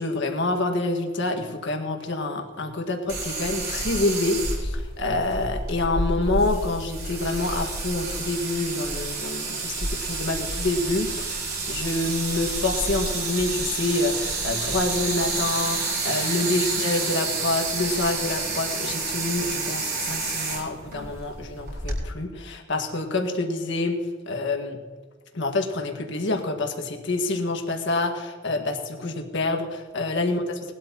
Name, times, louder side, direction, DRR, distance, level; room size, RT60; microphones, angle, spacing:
voice 1, 0.0-11.4 11.7-24.0 24.3-24.8 25.3-30.4, left 2 dB, 60° left, 3 dB, 1.7 m, -27 dB
sound 1, 3.1-22.0, right 3 dB, 50° right, 4.1 m, -29 dB
19.5 x 12.5 x 2.9 m, 1.5 s
head